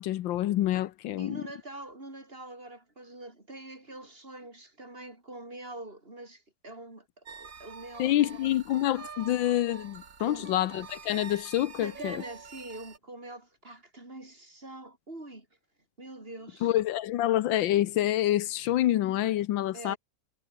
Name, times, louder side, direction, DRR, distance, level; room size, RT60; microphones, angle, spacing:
voice 1, 0.0-1.5 8.0-12.2 16.6-20.0, left 13 dB, 80° left, 1.5 m, -27 dB
voice 2, 1.2-8.6 10.3-11.0 11.8-15.5 16.0-16.7 19.7-20.0, right 2 dB, 30° right, 4.5 m, -44 dB
sound 1, 7.3-13.0, right 6 dB, 45° right, 2.0 m, -46 dB
omnidirectional pair, 2.1 m